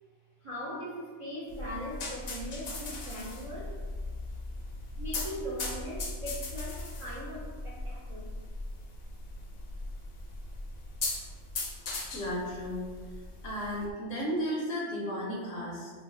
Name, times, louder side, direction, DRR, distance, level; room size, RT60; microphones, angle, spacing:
voice 1, 0.4-3.7 5.0-8.3, equal, 55° right, -8 dB, 0.3 m, -40 dB
sound 1, 1.5-13.9, left 2 dB, 60° left, 0.7 m, -39 dB
voice 2, 11.9-13.2 13.4-15.9, equal, 80° left, -3 dB, 1.2 m, -34 dB
3.0 x 2.1 x 3.6 m, 1.5 s
omnidirectional pair, 1.3 m